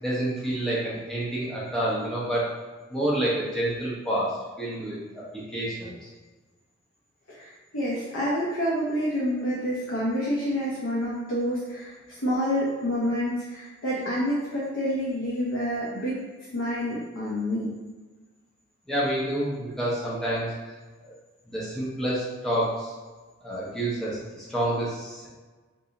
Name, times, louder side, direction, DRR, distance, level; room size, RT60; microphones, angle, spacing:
voice 1, 0.0-2.4 2.9-5.0 5.3-5.9 18.9-20.5 21.0-21.1 21.5-22.9 23.4-25.3, right 1 dB, 5° left, -8 dB, 0.9 m, -28 dB
voice 2, 7.3-16.2 16.5-17.8, equal, 75° left, -7 dB, 0.8 m, -28 dB
3.8 x 2.6 x 2.9 m, 1.3 s
head